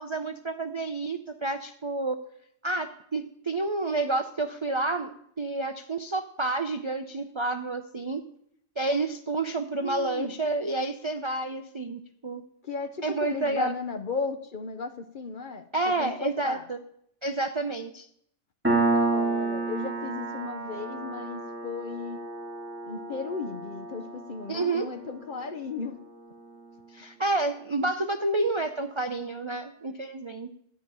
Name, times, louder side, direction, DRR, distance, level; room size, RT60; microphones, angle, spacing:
voice 1, 0.0-2.2 2.6-8.2 8.8-12.4 13.0-13.7 15.7-16.8 17.2-18.1 24.5-24.9 26.9-30.5, right 2 dB, 40° right, 7 dB, 0.4 m, -29 dB
voice 2, 9.8-10.3 12.6-15.7 16.0-16.7 18.8-22.2 22.8-26.0, left 4 dB, 50° left, 8 dB, 0.8 m, -35 dB
Piano, 18.6-25.8, right 3 dB, 10° right, 2.3 m, -30 dB
12.0 x 5.3 x 8.7 m, 0.70 s
omnidirectional pair, 1.3 m